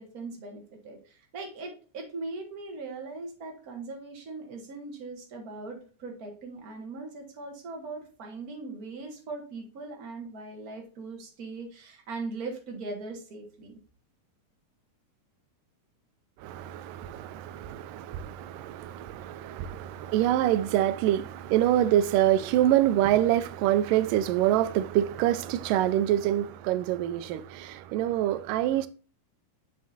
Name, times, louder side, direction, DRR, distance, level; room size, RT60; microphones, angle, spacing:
voice 1, 0.0-13.8, right 3 dB, 35° right, 1.8 m, -40 dB
voice 2, 16.4-28.9, right 12 dB, 90° right, 2.2 m, -25 dB
7.4 x 6.1 x 2.7 m
omnidirectional pair, 3.7 m